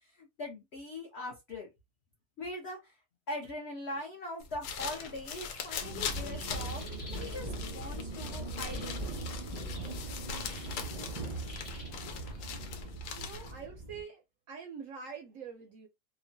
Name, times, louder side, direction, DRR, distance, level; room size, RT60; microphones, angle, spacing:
voice 1, 0.2-1.7 2.4-2.8 3.3-6.8 7.1-9.1, left 1 dB, 60° left, 0.7 m, -41 dB
sound 1, 4.4-13.6, left 6 dB, 85° left, 1.2 m, -41 dB
sound 2, 4.8-12.9, equal, 35° left, 0.9 m, -51 dB
sound 3, 5.8-14.0, right 2 dB, 35° right, 0.6 m, -40 dB
voice 2, 13.2-14.2 14.5-15.9, right 6 dB, 70° right, 0.8 m, -45 dB
2.9 x 2.2 x 2.5 m
omnidirectional pair, 1.8 m